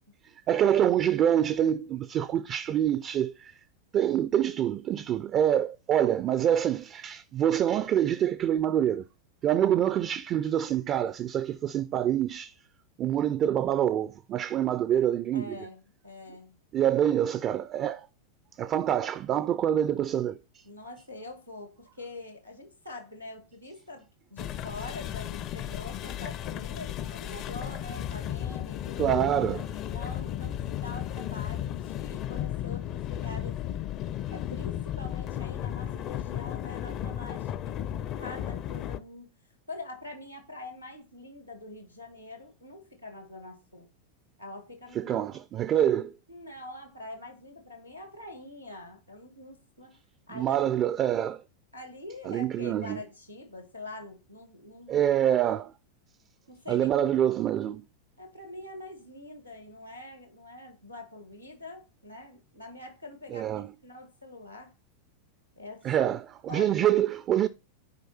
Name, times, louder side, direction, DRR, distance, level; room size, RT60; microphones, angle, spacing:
voice 1, 0.5-3.5 3.9-9.0 9.4-12.5 13.0-15.6 16.7-18.1 18.6-20.4 29.0-29.7 45.0-46.1 50.3-51.4 52.2-53.0 54.9-55.7 56.7-57.8 63.3-63.7 65.8-66.3 66.5-67.5, right 10 dB, 30° right, 0.4 m, -26 dB
voice 2, 5.9-6.4 15.3-16.6 16.9-17.2 20.6-29.1 29.9-33.6 34.3-37.8 38.2-39.3 39.7-43.9 44.4-45.2 46.3-50.0 50.3-50.6 51.7-55.1 56.5-56.9 58.2-64.7 65.6-66.1 66.5-66.9, left 2 dB, 90° left, 2.0 m, -44 dB
sound 1, 24.4-39.0, left 11 dB, 35° left, 0.5 m, -34 dB
9.5 x 4.8 x 4.2 m
figure-of-eight pair, 90°, 0 cm